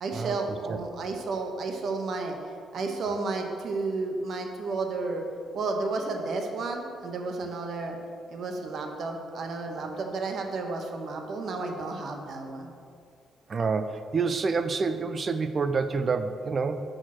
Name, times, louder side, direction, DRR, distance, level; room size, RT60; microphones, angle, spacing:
voice 1, 0.0-2.4 2.7-5.2 5.5-8.0 8.3-12.7, right 3 dB, 60° right, 3 dB, 1.1 m, -32 dB
voice 2, 13.5-16.8, right 4 dB, 40° right, 10 dB, 0.4 m, -27 dB
6.4 x 6.0 x 6.2 m, 2.4 s
cardioid pair, 90°, 0 cm